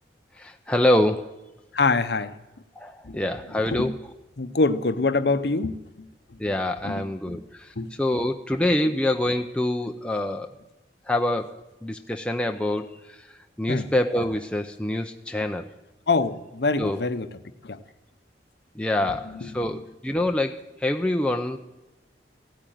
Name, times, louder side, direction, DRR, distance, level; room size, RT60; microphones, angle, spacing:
voice 1, 0.4-1.3 2.8-4.0 6.4-10.5 11.1-15.7 16.8-17.1 18.7-21.6, left 1 dB, 5° left, 0.6 m, -26 dB
voice 2, 1.7-2.3 3.0-3.2 3.7-3.9 4.4-5.8 6.8-7.4 7.8-7.9 13.7-13.9 16.1-17.3 17.6-17.8, left 3 dB, 65° left, 0.8 m, -24 dB
16.0 x 8.7 x 9.2 m
head